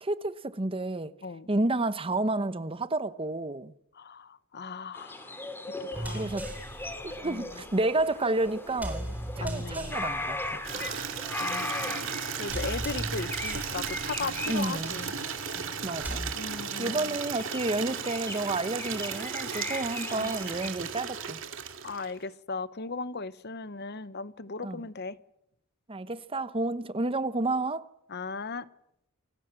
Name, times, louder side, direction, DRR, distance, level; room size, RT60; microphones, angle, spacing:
voice 1, 0.0-1.1 1.5-3.7 6.1-6.5 7.0-10.6 14.5-15.0 15.8-16.3 16.8-21.4 24.6-24.8 25.9-27.9, right 2 dB, 25° right, 0.9 m, -30 dB
voice 2, 3.9-6.3 7.2-7.5 9.4-10.0 10.7-11.1 11.4-12.1 12.4-15.1 16.3-17.2 20.0-20.3 21.8-25.2 28.1-28.7, left 4 dB, 50° left, 1.0 m, -38 dB
sound 1, 4.9-20.7, left 2 dB, 10° left, 2.3 m, -39 dB
sound 2, 5.9-16.3, right 1 dB, 10° right, 4.0 m, -39 dB
Water tap faucet / Liquid, 10.6-22.2, right 7 dB, 65° right, 2.5 m, -36 dB
28.0 x 19.0 x 7.7 m
head